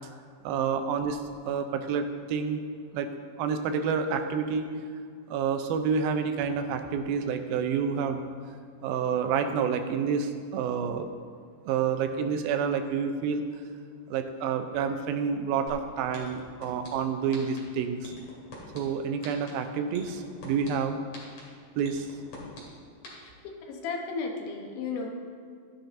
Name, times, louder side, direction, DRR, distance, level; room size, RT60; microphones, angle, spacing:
voice 1, 0.4-2.6 2.9-3.1 3.4-4.7 5.3-8.2 8.8-11.1 11.7-13.4 14.1-18.1 18.7-21.0 21.8-22.1, right 6 dB, 90° right, 7 dB, 2.5 m, -29 dB
sound 1, 15.7-15.8 16.1-16.9 17.3-17.6 18.0-18.8 19.2-19.5 19.9-20.7 21.1-21.4 21.8-22.6 23.0-23.1, left 3 dB, 55° left, 3.1 m, -44 dB
voice 2, 23.6-25.1, left 4 dB, 85° left, 1 dB, 3.0 m, -33 dB
14.0 x 10.0 x 2.6 m, 2.1 s
omnidirectional pair, 4.1 m